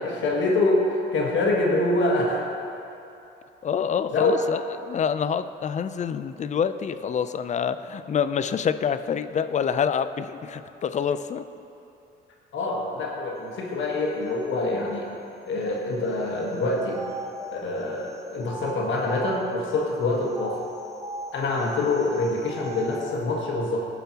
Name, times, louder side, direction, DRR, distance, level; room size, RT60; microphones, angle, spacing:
voice 1, 0.0-2.5 4.1-4.3 12.5-15.1 15.5-17.0 17.5-20.6 21.3-23.9, left 2 dB, 70° left, -1 dB, 1.4 m, -25 dB
voice 2, 3.6-11.5, left 7 dB, 35° left, 11 dB, 0.4 m, -27 dB
sound 1, 16.4-19.8 20.3-23.2, right 2 dB, 15° right, 0.7 m, -39 dB
17.0 x 5.6 x 2.9 m, 2.8 s
cardioid pair, 90°, 20 cm